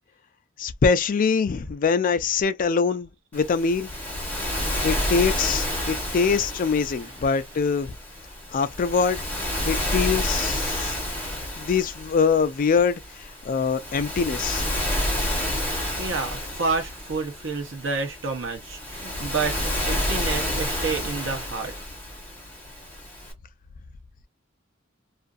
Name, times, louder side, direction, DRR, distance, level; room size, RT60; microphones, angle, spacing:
voice 1, 0.6-3.9 4.8-7.9 8.5-9.2 9.7-11.0 11.6-14.7, left 5 dB, 45° left, 0.4 m, -23 dB
Waves surf, 3.3-23.3, left 1 dB, 10° left, 1.0 m, -30 dB
voice 2, 16.0-21.7, right 4 dB, 65° right, 0.9 m, -29 dB
2.6 x 2.5 x 2.4 m
head